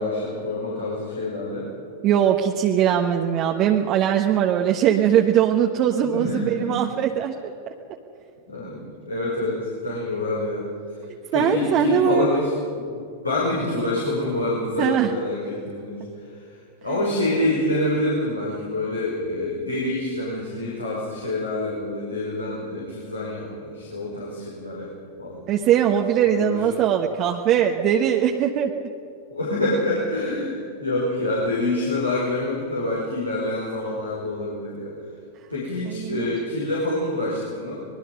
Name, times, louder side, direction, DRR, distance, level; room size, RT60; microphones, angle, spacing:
voice 1, 0.0-1.7 6.0-6.7 8.5-10.7 11.3-12.9 13.2-16.0 16.3-16.5 16.8-24.9 25.2-25.5 26.2-26.9 29.3-34.9 35.5-37.9, left 2 dB, 85° left, -5 dB, 5.4 m, -26 dB
voice 2, 2.0-7.7 11.3-12.4 14.8-15.1 25.5-28.8 35.9-36.3, right 9 dB, 40° right, 2 dB, 1.3 m, -21 dB
24.0 x 21.5 x 5.4 m, 2.5 s
figure-of-eight pair, 90°, 0 cm